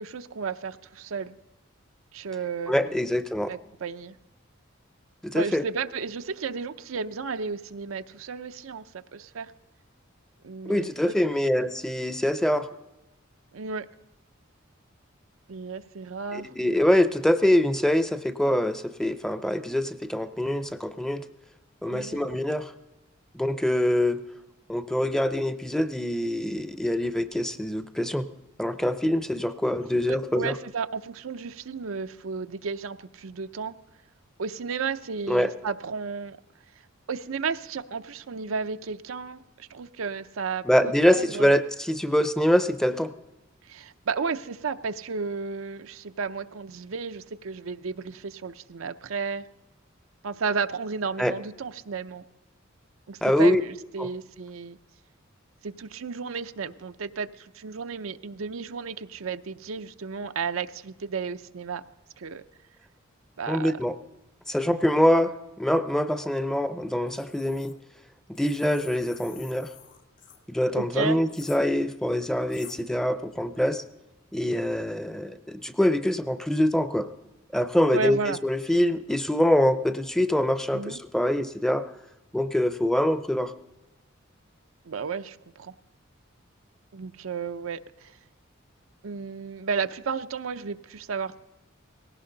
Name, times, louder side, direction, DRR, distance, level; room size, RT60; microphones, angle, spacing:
voice 1, 0.0-1.4 2.1-3.1 3.5-4.2 5.3-9.5 10.4-11.1 13.5-13.9 15.5-16.5 21.9-22.2 30.1-33.8 34.4-36.4 37.1-41.5 43.6-49.5 50.2-52.2 53.1-54.8 55.6-61.8 62.2-62.4 63.4-63.8 70.8-71.3 77.9-78.4 80.7-81.0 84.9-85.7 86.9-88.1 89.0-91.4, right 5 dB, 90° right, 10 dB, 0.6 m, -33 dB
voice 2, 2.7-3.5 5.2-5.6 10.7-12.7 16.3-21.2 21.8-22.7 23.3-24.2 24.7-28.3 28.6-30.5 35.3-35.5 40.6-43.1 51.2-51.3 53.2-53.6 54.0-54.1 63.5-63.9 64.5-67.7 68.3-69.7 70.5-73.8 74.3-77.1 77.5-81.9 82.3-83.5, left 1 dB, 5° left, 11 dB, 0.5 m, -24 dB
sound 1, 67.1-67.7 68.3-70.4 71.3-71.6 72.5-72.8, left 9 dB, 60° left, 2.1 m, -48 dB
18.5 x 17.0 x 3.9 m, 1.0 s
head